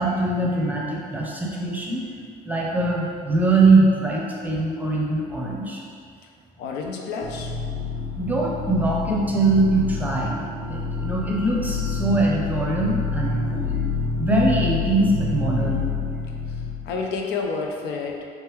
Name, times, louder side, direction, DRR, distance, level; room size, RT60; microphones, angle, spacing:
voice 1, 0.0-2.1 2.4-5.8 8.1-10.4 10.7-13.8 14.2-15.8, right 2 dB, 10° right, -3 dB, 0.6 m, -22 dB
voice 2, 6.6-7.6 16.5-18.3, left 4 dB, 80° left, 1 dB, 0.5 m, -30 dB
sound 1, 7.2-17.0, left 4 dB, 85° right, 0.7 m, -28 dB
3.2 x 3.0 x 3.5 m, 2.2 s
cardioid pair, 110°, 17 cm